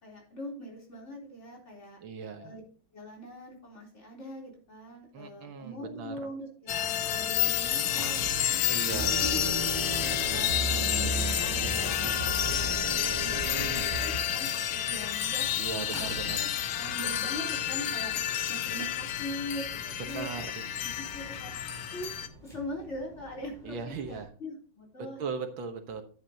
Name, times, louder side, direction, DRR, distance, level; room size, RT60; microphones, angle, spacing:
voice 1, 0.0-2.0 2.4-2.6 2.9-9.4 10.0-16.5 16.7-18.1 18.5-20.5 20.8-22.2 22.4-23.8 24.1-25.2, equal, 35° left, -1 dB, 4.0 m, -42 dB
voice 2, 2.0-2.5 5.1-6.3 8.7-9.1 10.0-10.5 13.4-13.9 15.6-16.5 20.1-20.5 23.6-24.3 25.2-26.0, right 5 dB, 75° right, 6 dB, 2.0 m, -38 dB
sound 1, 6.7-22.3, left 10 dB, 80° left, 1.6 m, -30 dB
sound 2, 6.7-24.3, right 1 dB, 10° left, 4.2 m, -48 dB
sound 3, 8.9-14.2, right 1 dB, 55° right, 3.2 m, -35 dB
11.0 x 9.7 x 2.9 m, 0.40 s
omnidirectional pair, 2.2 m